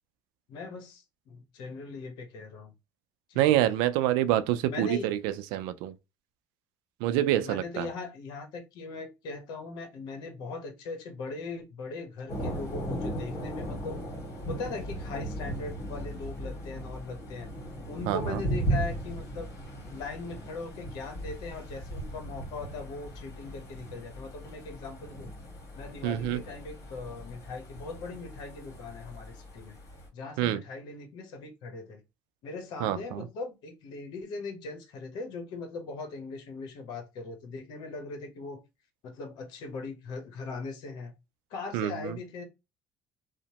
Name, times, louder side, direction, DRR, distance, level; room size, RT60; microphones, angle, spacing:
voice 1, 0.5-2.7 3.3-3.6 4.7-5.1 7.4-14.0 14.5-17.5 17.9-19.5 19.9-25.3 25.8-29.8 30.1-32.0 32.4-38.6 39.0-41.1 41.5-42.4, left 3 dB, 70° left, 0.9 m, -40 dB
voice 2, 3.4-5.9 7.0-7.9 18.1-18.4 26.0-26.4 30.4-30.6 32.8-33.2 41.7-42.1, right 13 dB, 85° right, 0.4 m, -27 dB
Thunder, 12.3-30.1, right 1 dB, 45° left, 1.7 m, -37 dB
2.9 x 2.1 x 2.8 m
supercardioid pair, 90°, 8 cm